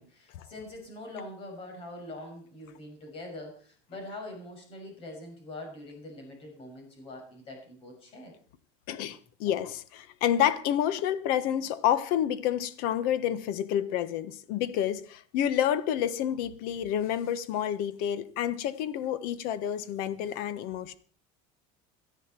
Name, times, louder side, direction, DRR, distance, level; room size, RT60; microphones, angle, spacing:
voice 1, 0.0-8.3, left 1 dB, 35° left, 6.4 m, -43 dB
voice 2, 8.9-21.0, left 10 dB, 60° left, 1.2 m, -29 dB
17.5 x 12.5 x 4.5 m
cardioid pair, 165°, 17 cm